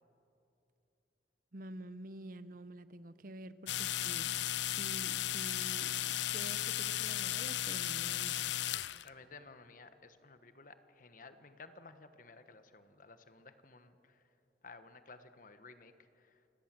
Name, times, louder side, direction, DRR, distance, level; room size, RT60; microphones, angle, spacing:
voice 1, 1.5-4.3 4.7-8.5, right 1 dB, 50° right, 14 dB, 0.8 m, -49 dB
sound 1, 3.7-9.1, left 12 dB, 90° left, 0.5 m, -35 dB
voice 2, 9.0-14.2 14.6-16.4, left 4 dB, 50° left, 10 dB, 1.3 m, -55 dB
28.0 x 18.5 x 7.6 m, 2.8 s
head